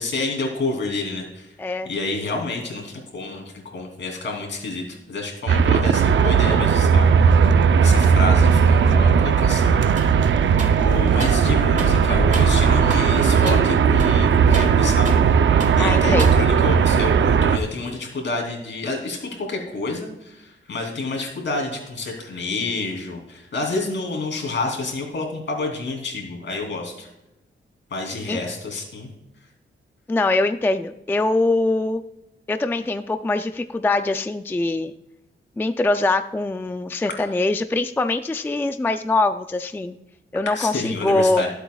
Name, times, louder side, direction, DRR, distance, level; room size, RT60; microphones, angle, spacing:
voice 1, 0.0-1.5 1.8-7.5 7.8-9.9 10.6-15.5 15.8-27.1 27.9-29.1 37.2-37.3 40.5-41.5, left 3 dB, 65° left, 2 dB, 3.1 m, -29 dB
voice 2, 1.6-1.9 10.5-10.8 15.8-16.3 28.3-28.4 30.1-32.0 32.5-34.9 35.6-40.0 40.3-41.4, left 2 dB, 10° left, 9 dB, 0.3 m, -23 dB
sound 1, 5.5-17.6, right 6 dB, 70° right, 0.6 m, -17 dB
sound 2, 10.0-10.2 10.6-11.5 11.8-12.0 12.3-12.6 12.9-13.2 13.5-13.7 14.0-15.3 15.6-15.8 16.2-16.8, right 3 dB, 40° right, 1.3 m, -34 dB
24.0 x 8.1 x 2.4 m, 0.94 s
wide cardioid pair, 160°, 20 cm